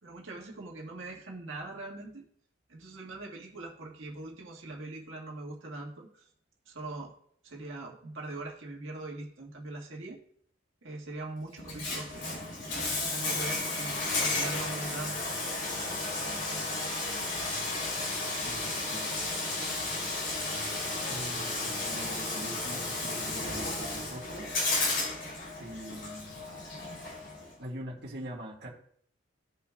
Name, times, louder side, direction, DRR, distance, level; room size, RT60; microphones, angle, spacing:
voice 1, 0.0-2.3 2.7-6.2 6.6-7.1 7.4-10.2 10.8-12.4 13.0-15.1, right 2 dB, 80° right, -2 dB, 1.7 m, -41 dB
Bathtub (filling or washing), 11.6-27.5, left 2 dB, 65° left, 3.1 m, -33 dB
voice 2, 18.4-19.2 21.1-24.5 25.6-26.5 27.6-28.7, equal, 55° right, -4 dB, 1.6 m, -43 dB
16.0 x 5.8 x 2.3 m, 0.62 s
head